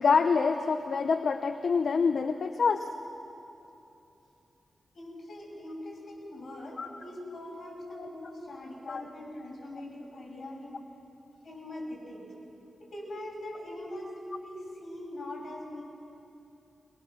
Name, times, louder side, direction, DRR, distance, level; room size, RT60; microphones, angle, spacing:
voice 1, 0.0-2.9 6.8-6.9 8.0-8.1 8.9-9.0, left 5 dB, 65° left, 8 dB, 0.8 m, -26 dB
voice 2, 4.9-10.8 11.4-12.3 12.8-14.1 14.4-15.8, left 1 dB, 50° left, -4 dB, 7.6 m, -42 dB
23.5 x 21.5 x 7.2 m, 2.9 s
wide cardioid pair, 95°, 0 cm